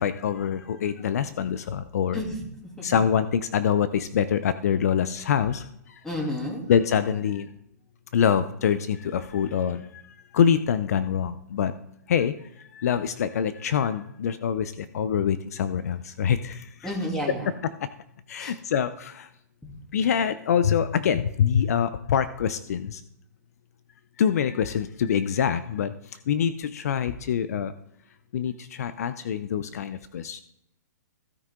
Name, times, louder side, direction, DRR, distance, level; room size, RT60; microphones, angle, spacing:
voice 1, 0.0-2.2 2.8-5.6 6.7-7.5 8.1-9.9 10.3-11.7 12.1-12.3 12.7-16.9 18.3-19.3 19.9-23.0 24.2-25.9 26.3-27.7 28.3-30.4, left 8 dB, 65° left, 13 dB, 0.6 m, -25 dB
voice 2, 6.0-6.6 16.8-17.5 18.4-18.5 19.6-19.7, left 1 dB, 5° left, -2 dB, 2.8 m, -30 dB
16.0 x 5.6 x 3.8 m, 0.79 s
hypercardioid pair, 150°, 9 cm